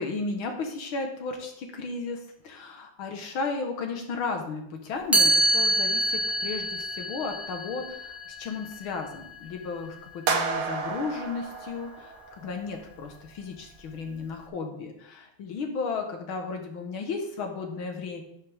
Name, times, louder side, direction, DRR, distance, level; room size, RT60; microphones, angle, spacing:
voice 1, 0.0-18.2, left 4 dB, 75° left, 4 dB, 2.2 m, -34 dB
Chime, 5.1-11.0, right 1 dB, ahead, 0.6 m, -27 dB
sound 1, 10.3-12.5, right 5 dB, 85° right, 2.0 m, -31 dB
12.0 x 7.3 x 3.6 m, 0.76 s
omnidirectional pair, 2.3 m